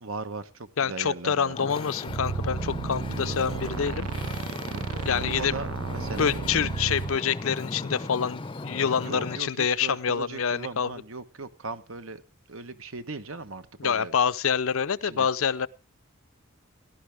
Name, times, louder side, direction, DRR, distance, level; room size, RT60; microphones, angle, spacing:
voice 1, 0.0-1.5 4.7-6.4 9.0-12.2 12.5-14.1 15.0-15.3, right 3 dB, 65° right, 1.2 m, -38 dB
voice 2, 0.8-4.1 5.0-5.5 6.2-10.9 13.8-15.7, left 7 dB, 65° left, 0.6 m, -26 dB
Wind / Ocean, 1.5-9.4, left 2 dB, 25° left, 0.6 m, -37 dB
sound 1, 2.1-7.2, right 5 dB, 80° right, 0.6 m, -33 dB
18.0 x 12.0 x 3.5 m
head